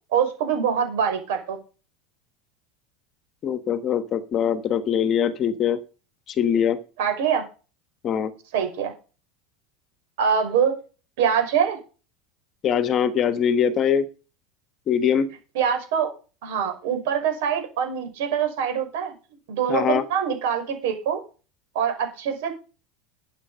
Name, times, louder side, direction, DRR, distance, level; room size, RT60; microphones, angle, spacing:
voice 1, 0.1-1.6 7.0-7.4 8.5-8.9 10.2-10.8 11.2-11.8 15.5-16.1 16.4-19.1 19.5-21.2 21.7-22.6, right 7 dB, 70° right, 5 dB, 5.8 m, -24 dB
voice 2, 3.4-5.8 6.3-6.8 8.0-8.3 12.6-14.1 14.9-15.3 19.7-20.0, left 8 dB, 30° left, 13 dB, 1.2 m, -22 dB
13.0 x 8.4 x 5.6 m, 0.34 s
supercardioid pair, 155°, 0 cm